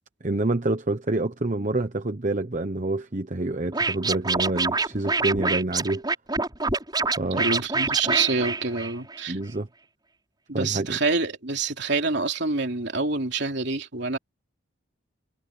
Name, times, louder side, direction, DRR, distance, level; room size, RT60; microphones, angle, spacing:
voice 1, 0.2-6.0 7.2-7.4 9.3-9.7 10.5-11.0, right 2 dB, 40° right, 1.0 m, -27 dB
Scratching (performance technique), 3.7-9.2, right 3 dB, 20° right, 6.6 m, -26 dB
voice 2, 7.3-9.4 10.5-14.2, right 4 dB, 60° right, 3.3 m, -26 dB
head